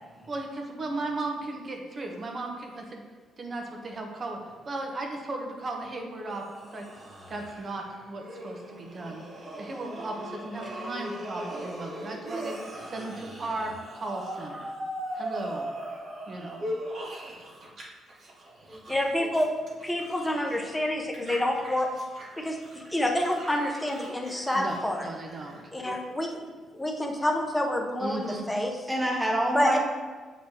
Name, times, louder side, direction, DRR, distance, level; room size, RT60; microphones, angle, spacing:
voice 1, 0.3-3.0 3.4-6.9 7.3-9.3 9.6-14.7 15.1-16.7 24.5-25.6 28.0-28.5, right 2 dB, 40° right, 2 dB, 1.1 m, -36 dB
sound 1, 6.3-17.8 18.1-20.7 21.1-25.6, right 1 dB, 60° right, 1.5 m, -39 dB
voice 2, 10.4-11.1 11.5-11.6 18.7-18.8 28.9-29.8, right 1 dB, 10° right, -1 dB, 1.3 m, -29 dB
voice 3, 18.9-19.5 19.8-21.9 22.4-25.1 25.7-26.5 26.7-28.7 29.5-29.8, left 1 dB, 10° left, 1 dB, 0.9 m, -28 dB
7.9 x 4.1 x 3.0 m, 1.4 s
cardioid pair, 90°, 0 cm